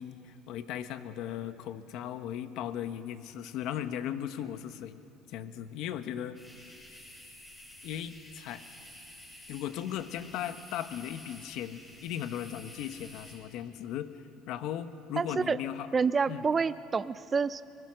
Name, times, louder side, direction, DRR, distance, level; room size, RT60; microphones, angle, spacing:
voice 1, 0.0-5.0 5.3-6.4 7.8-8.6 9.5-15.9 16.3-16.5, left 10 dB, 65° left, 10 dB, 1.1 m, -37 dB
sound 1, 6.3-13.3, left 1 dB, 15° left, 7.7 m, -51 dB
voice 2, 15.2-15.6 15.9-17.6, right 5 dB, 25° right, 14 dB, 0.4 m, -28 dB
23.5 x 21.5 x 6.4 m, 2.6 s
cardioid pair, 115°, 0 cm